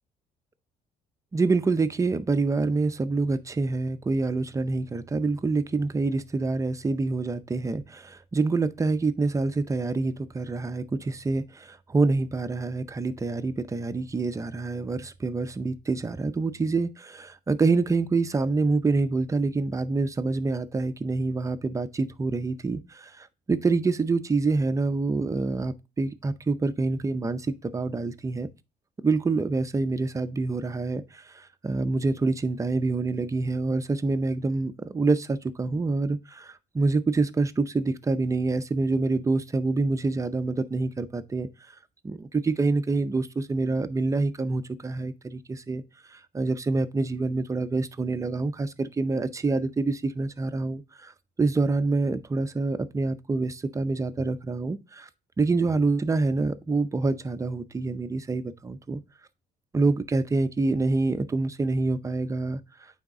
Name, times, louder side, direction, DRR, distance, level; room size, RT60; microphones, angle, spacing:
voice 1, 1.3-28.5 29.0-41.5 42.0-45.8 46.1-51.1 51.4-55.1 55.4-59.0 59.7-62.6, right 3 dB, 20° right, 0.6 m, -26 dB
8.8 x 3.5 x 3.6 m
cardioid pair, 110°, 17 cm